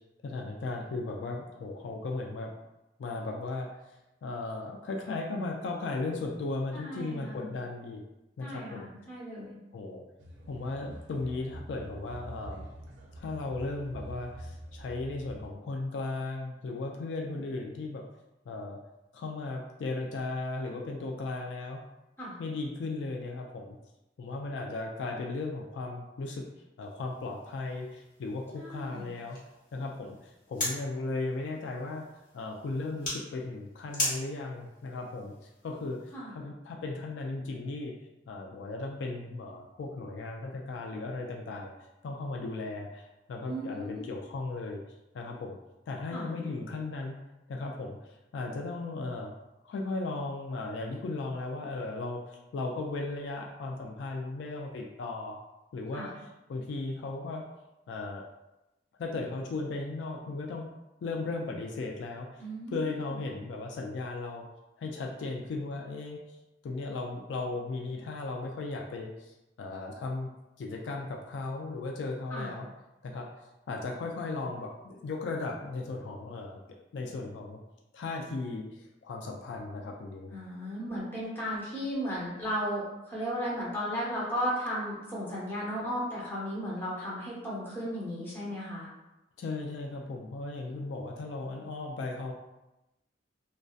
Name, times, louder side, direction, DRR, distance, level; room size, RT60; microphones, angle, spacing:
voice 1, 0.2-2.5 3.0-3.7 4.2-8.0 8.4-8.9 9.7-10.0 10.5-12.7 13.2-18.0 18.5-18.8 19.1-21.8 22.4-23.8 24.2-26.4 26.8-29.4 29.7-32.0 32.3-35.3 35.6-37.9 38.3-41.7 42.0-44.8 45.1-45.6 45.9-47.2 47.5-49.3 49.6-55.4 55.7-56.1 56.5-57.4 57.9-58.2 59.0-60.7 61.0-64.5 64.8-66.4 66.6-70.3 70.6-72.7 73.0-76.6 76.9-77.6 77.9-80.3 89.4-92.3, left 3 dB, 70° left, 0 dB, 0.3 m, -36 dB
voice 2, 6.7-7.5 8.4-9.6 22.2-22.4 28.6-29.1 36.1-36.3 43.5-44.1 46.1-46.3 55.9-56.1 62.4-63.2 72.3-72.5 80.3-88.9, equal, 10° left, -8 dB, 0.8 m, -35 dB
sound 1, 10.2-15.5, right 1 dB, 70° right, 0.4 m, -46 dB
sound 2, 26.8-36.1, left 1 dB, 50° left, 0.9 m, -40 dB
2.5 x 2.1 x 2.3 m, 0.96 s
head